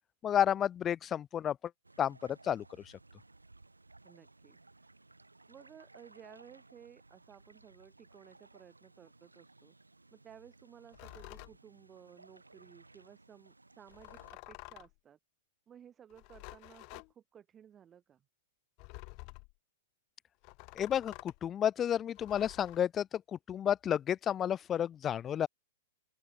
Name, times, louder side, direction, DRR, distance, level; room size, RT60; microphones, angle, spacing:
voice 1, 0.2-1.6 2.0-2.6 20.8-23.2 23.5-25.5, left 9 dB, 20° left, 0.5 m, -31 dB
sound 1, 1.8-14.3, right 2 dB, 85° right, 3.7 m, -60 dB
voice 2, 4.0-4.9 5.5-9.8 10.1-15.2 15.7-18.2, right 9 dB, 20° right, 4.1 m, -57 dB
sound 2, 10.9-11.6 13.9-15.0 16.1-17.1 18.8-19.5 20.4-21.4 22.2-22.8, left 34 dB, 40° left, 3.7 m, -50 dB
open air
figure-of-eight pair, 105°, 0 cm